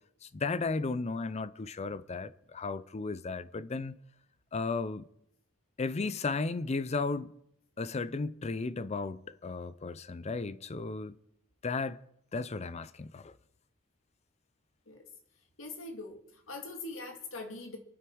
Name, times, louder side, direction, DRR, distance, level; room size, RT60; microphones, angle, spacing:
voice 1, 0.2-4.0 4.5-5.0 5.8-7.3 7.8-11.1 11.6-12.0 12.3-13.3, left 3 dB, 35° left, 0.5 m, -34 dB
voice 2, 15.6-17.8, left 3 dB, 70° left, 2.4 m, -42 dB
26.5 x 9.6 x 4.7 m
head